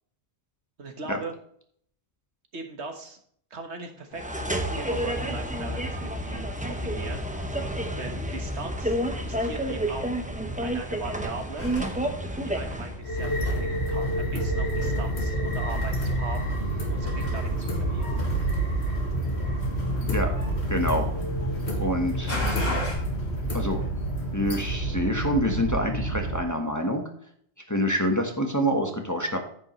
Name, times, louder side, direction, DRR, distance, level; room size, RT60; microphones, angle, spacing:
voice 1, 0.8-1.4 2.5-3.2 3.5-7.5 8.0-9.0 9.2-10.1 10.6-11.7 12.4-18.1, right 3 dB, 75° right, 5 dB, 1.7 m, -39 dB
sound 1, 4.1-13.0, right 1 dB, 5° right, 0.9 m, -30 dB
sound 2, 11.6-22.9, left 2 dB, 55° left, 3.6 m, -39 dB
sound 3, 13.0-26.4, right 1 dB, 70° left, 2.2 m, -28 dB
voice 2, 20.7-21.0 21.8-22.4 23.5-23.8 24.3-27.0 27.7-29.4, equal, 15° left, 2 dB, 1.2 m, -26 dB
10.0 x 8.5 x 3.1 m, 0.64 s
omnidirectional pair, 1.2 m